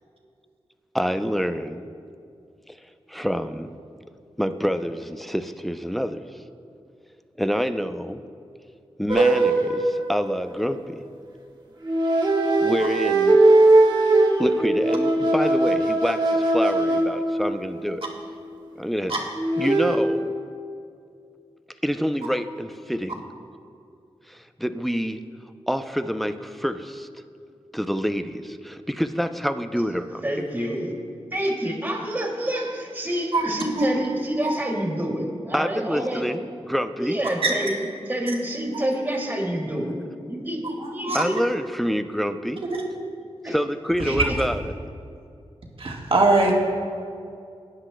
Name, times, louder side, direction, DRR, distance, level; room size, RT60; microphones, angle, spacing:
voice 1, 0.9-1.9 3.1-3.8 4.4-6.3 7.4-8.2 9.0-11.0 12.6-13.4 14.4-18.1 18.8-19.1 19.6-20.3 21.8-23.3 24.3-25.2 25.7-27.1 27.7-30.5 35.5-37.2 41.1-42.6 43.5-44.7, equal, ahead, 9 dB, 0.5 m, -27 dB
sound 1, 9.1-10.7 11.8-17.9 19.3-20.0, right 2 dB, 40° right, 1.6 m, -20 dB
voice 2, 30.2-30.9 31.3-36.2 37.0-40.0 40.2-41.4 43.4-43.6 44.0-44.4, right 1 dB, 15° right, -1 dB, 2.5 m, -28 dB
voice 3, 40.8-41.2 42.7-42.8 44.0-44.3 45.8-46.5, right 3 dB, 60° right, -1 dB, 1.6 m, -22 dB
18.0 x 9.9 x 2.2 m, 2.4 s
cardioid pair, 55°, 11 cm